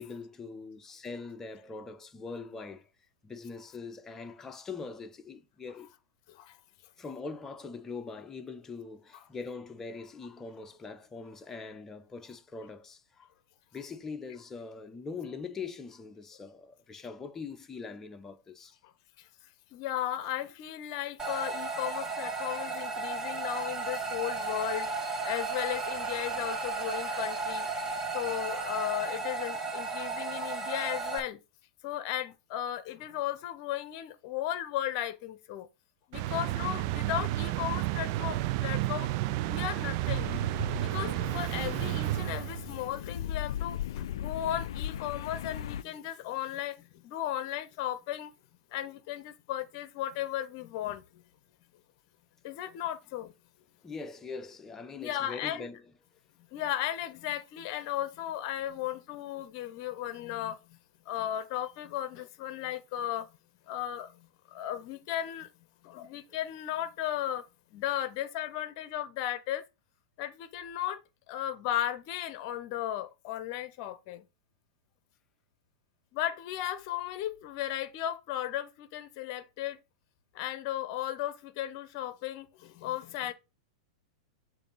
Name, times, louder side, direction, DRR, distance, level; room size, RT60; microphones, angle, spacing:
voice 1, 0.0-2.9 3.2-6.0 6.5-6.6 7.0-13.3 13.7-18.7 53.8-55.9 66.3-66.4, left 4 dB, 15° left, 0.9 m, -42 dB
voice 2, 19.7-24.9 25.2-27.7 28.1-31.4 31.8-35.7 36.1-39.1 39.5-40.3 40.8-48.3 48.7-51.2 52.4-53.3 54.9-55.7 56.5-60.8 61.1-63.3 63.7-65.5 65.8-67.4 67.7-69.6 70.2-71.0 71.3-74.2 76.1-79.8 80.3-83.3, left 12 dB, 50° left, 0.8 m, -35 dB
sound 1, 21.2-31.2, right 3 dB, 15° right, 1.5 m, -34 dB
sound 2, 36.1-42.8, right 16 dB, 50° right, 0.4 m, -31 dB
sound 3, 40.1-45.8, left 10 dB, 65° left, 0.3 m, -38 dB
6.9 x 2.8 x 5.5 m
hypercardioid pair, 100°, 3 cm